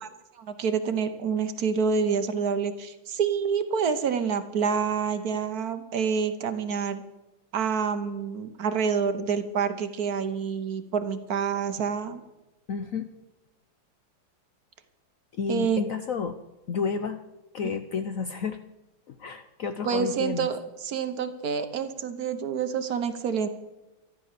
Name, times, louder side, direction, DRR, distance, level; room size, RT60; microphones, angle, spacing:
voice 1, 0.4-7.0 7.5-12.2 15.5-15.8 19.8-23.5, right 6 dB, 55° right, 9 dB, 1.3 m, -27 dB
voice 2, 12.7-13.1 15.3-16.4 16.7-17.2 17.5-18.6 19.1-20.5, left 5 dB, 75° left, 9 dB, 0.7 m, -31 dB
13.5 x 11.0 x 6.7 m, 1.0 s
omnidirectional pair, 2.3 m